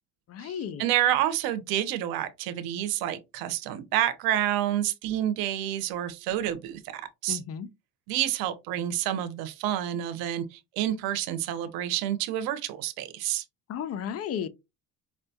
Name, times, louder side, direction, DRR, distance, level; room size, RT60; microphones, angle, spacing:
voice 1, 0.3-0.9 7.3-7.7 13.7-14.5, left 8 dB, 45° left, 0.4 m, -33 dB
voice 2, 0.8-7.4 8.1-13.4, right 12 dB, 90° right, 0.7 m, -29 dB
4.7 x 2.2 x 2.7 m
cardioid pair, 120°, 35 cm